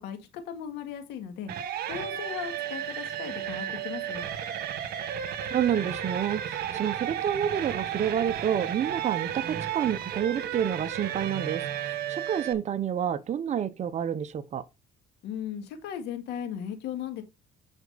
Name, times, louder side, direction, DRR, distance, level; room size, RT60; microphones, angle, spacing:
voice 1, 0.0-1.5 1.9-4.3 15.2-17.2, left 9 dB, 85° left, 2.0 m, -37 dB
sound 1, 1.5-12.5, right 10 dB, 65° right, 1.6 m, -33 dB
voice 2, 5.5-14.6, right 9 dB, 45° right, 0.9 m, -29 dB
9.1 x 6.1 x 4.1 m
cardioid pair, 110°, 17 cm